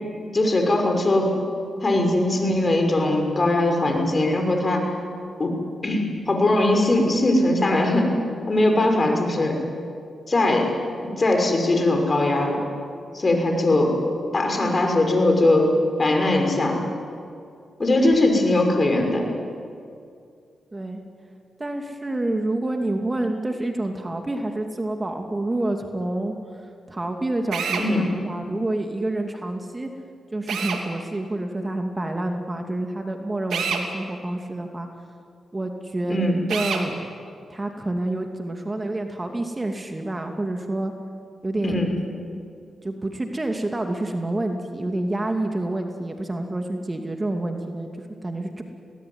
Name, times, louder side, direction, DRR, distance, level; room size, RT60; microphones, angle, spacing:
voice 1, 0.3-1.3 1.8-4.8 5.4-5.6 5.8-8.1 8.5-9.6 10.3-10.7 11.2-12.6 13.1-14.0 14.3-15.7 16.0-16.8 17.8-19.3 27.8-28.1 36.1-36.4 41.6-41.9, left 2 dB, 40° left, 3 dB, 6.1 m, -20 dB
voice 2, 21.6-26.4 26.9-29.9 30.3-34.9 35.5-37.0 37.5-40.9 41.4-41.7 42.8-47.9 48.2-48.6, right 1 dB, 25° right, 4 dB, 2.6 m, -28 dB
Drill, 27.5-27.9 30.5-30.8 33.5-33.8 36.5-36.8, right 6 dB, 80° right, 2.7 m, -26 dB
23.0 x 19.0 x 9.7 m, 2.4 s
supercardioid pair, 45°, 0 cm